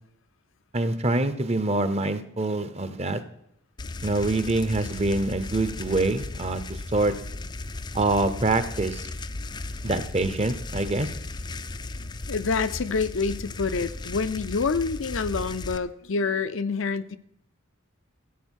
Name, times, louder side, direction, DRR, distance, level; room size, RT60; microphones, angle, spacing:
voice 1, 0.7-3.2 4.0-7.1 7.9-9.0 9.8-11.1, right 2 dB, 30° right, 12 dB, 0.8 m, -25 dB
sound 1, 3.8-15.8, left 2 dB, 20° left, 0.4 m, -36 dB
voice 2, 12.0-17.2, left 4 dB, 65° left, 11 dB, 0.6 m, -27 dB
14.5 x 8.1 x 6.4 m, 0.77 s
head